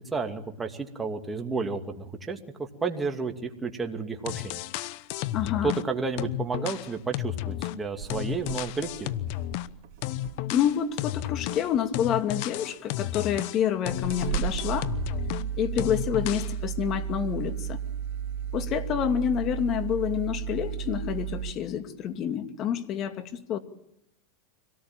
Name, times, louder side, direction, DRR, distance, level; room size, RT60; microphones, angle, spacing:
voice 1, 0.1-4.6 5.6-9.2, right 4 dB, 15° right, 4 dB, 2.5 m, -31 dB
sound 1, 4.0-4.1 4.3-5.9 6.2-9.7 10.0-15.5 15.8-16.5, left 14 dB, 60° left, 1.0 m, -33 dB
voice 2, 5.3-5.8 10.5-14.9 15.5-17.8 18.5-23.6, left 9 dB, 40° left, 9 dB, 2.5 m, -28 dB
sound 2, 6.7-6.9 7.4-7.5 7.8-10.6 11.1-11.5 12.4-12.5 13.3-13.4 13.9-21.5, right 9 dB, 55° right, 3.0 m, -34 dB
25.0 x 18.0 x 9.0 m, 0.75 s
supercardioid pair, 130°, 0 cm